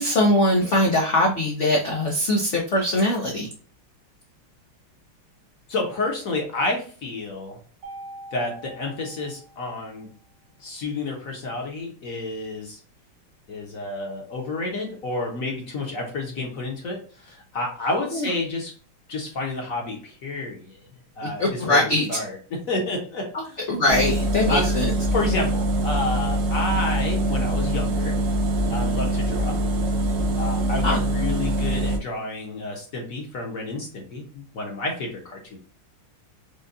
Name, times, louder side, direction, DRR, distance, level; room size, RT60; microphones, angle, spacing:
voice 1, 0.0-3.5 18.1-18.3 21.2-22.2 23.3-23.4 23.7-24.9 30.8-31.0, left 1 dB, 80° left, -1 dB, 0.6 m, -22 dB
voice 2, 5.7-7.6 8.3-10.1 10.6-12.8 13.5-18.7 19.1-20.8 21.2-23.6 24.5-24.7 25.1-28.2 28.7-29.6 30.4-35.6, left 2 dB, 55° left, 1 dB, 1.0 m, -30 dB
Mallet percussion, 7.8-10.1, right 1 dB, 70° right, 1.8 m, -43 dB
sound 1, 23.9-32.0, right 1 dB, 90° right, 0.7 m, -24 dB
5.1 x 2.2 x 2.6 m, 0.42 s
omnidirectional pair, 2.3 m